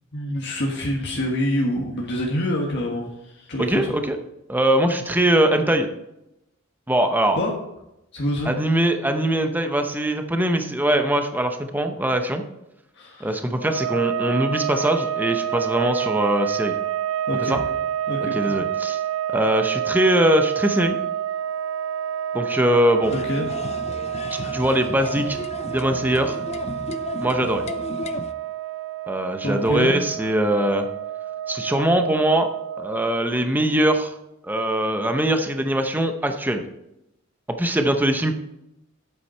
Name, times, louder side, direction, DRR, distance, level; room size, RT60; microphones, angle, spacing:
voice 1, 0.1-4.0 7.4-7.5 8.1-8.5 12.9-13.4 17.3-17.7 18.1-18.5 23.1-23.5 29.4-29.9, left 1 dB, 55° left, -1 dB, 1.5 m, -26 dB
voice 2, 3.6-4.2 4.5-5.9 6.9-7.4 8.5-12.4 13.2-16.7 17.5-17.6 18.3-19.0 19.3-21.0 22.3-23.1 24.4-25.4 25.6-26.4 27.2-27.6 29.1-30.9 31.5-32.5 32.8-34.1 34.4-36.6 37.5-38.3, right 1 dB, 10° right, 6 dB, 0.7 m, -21 dB
sound 1, 13.6-33.2, right 10 dB, 80° right, 0.5 m, -29 dB
sound 2, 23.0-28.3, left 3 dB, 30° left, 0.4 m, -34 dB
8.3 x 8.3 x 4.3 m, 0.85 s
head